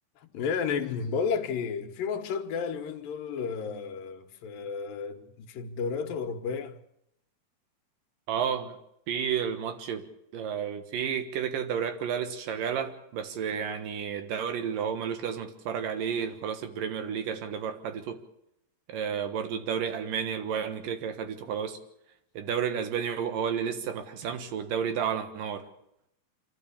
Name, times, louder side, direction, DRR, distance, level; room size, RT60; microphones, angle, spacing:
voice 1, 0.2-6.8, left 6 dB, 80° left, 2.9 m, -32 dB
voice 2, 8.3-8.8 9.1-10.1 10.3-18.2 18.9-21.8 22.3-25.6, right 7 dB, 75° right, 3.1 m, -31 dB
27.0 x 12.5 x 8.5 m
omnidirectional pair, 4.0 m